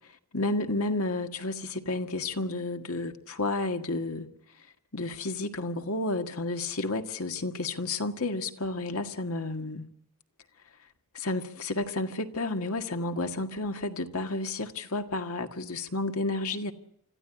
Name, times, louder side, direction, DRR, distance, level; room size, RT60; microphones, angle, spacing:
voice 1, 0.3-4.3 4.9-9.8 11.1-16.7, left 2 dB, 75° left, 1.8 m, -31 dB
26.0 x 14.5 x 9.9 m
head